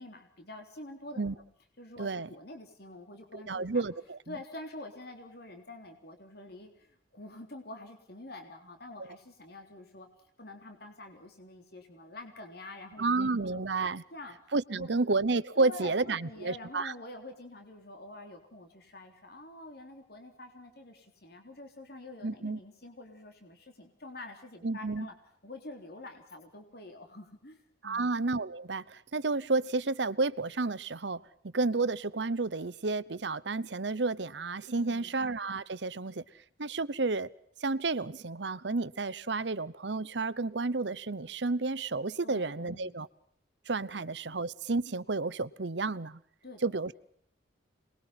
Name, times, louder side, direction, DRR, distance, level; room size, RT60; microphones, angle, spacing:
voice 1, 0.0-1.2 1.8-3.8 4.3-10.1 10.4-13.6 14.1-15.0 15.6-25.1 25.4-28.1 34.8-35.2 42.2-43.0 43.9-44.4 46.4-47.0, left 2 dB, 60° left, 3.6 m, -47 dB
voice 2, 3.3-4.2 13.0-14.0 14.5-16.9 22.2-22.6 24.6-25.1 27.8-36.2 36.6-37.3 37.6-43.1 43.7-46.2 46.6-47.0, right 3 dB, 70° right, 0.9 m, -31 dB
28.0 x 21.5 x 5.9 m
head